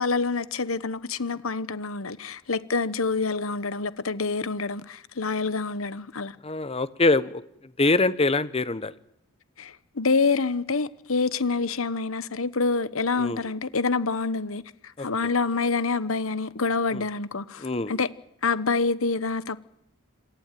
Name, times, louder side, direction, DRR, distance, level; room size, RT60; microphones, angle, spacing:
voice 1, 0.0-6.3 9.6-14.6 15.0-18.1 18.4-19.6, left 4 dB, 70° left, 1.1 m, -27 dB
voice 2, 6.4-7.4 7.8-8.9 13.2-13.4 15.0-15.1 16.9-17.0 17.6-17.9, left 2 dB, 30° left, 1.0 m, -24 dB
27.0 x 15.0 x 9.2 m
head